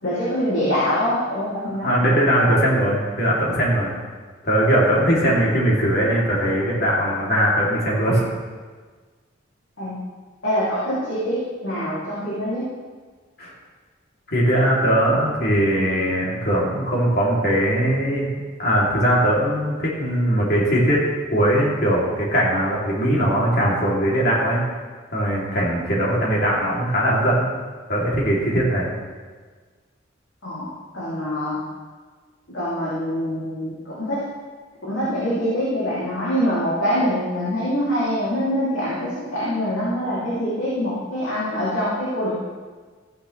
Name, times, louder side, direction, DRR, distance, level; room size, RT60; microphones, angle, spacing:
voice 1, 0.0-2.0 9.8-10.0 10.4-12.6 30.4-31.6 32.5-34.2 34.8-42.3, equal, 85° left, -9 dB, 2.8 m, -24 dB
voice 2, 1.8-3.9 4.4-8.2 13.4-13.5 14.3-18.3 18.6-24.6 25.1-27.5 27.9-28.9, equal, 55° left, -4 dB, 2.9 m, -20 dB
14.5 x 9.3 x 3.3 m, 1.4 s
head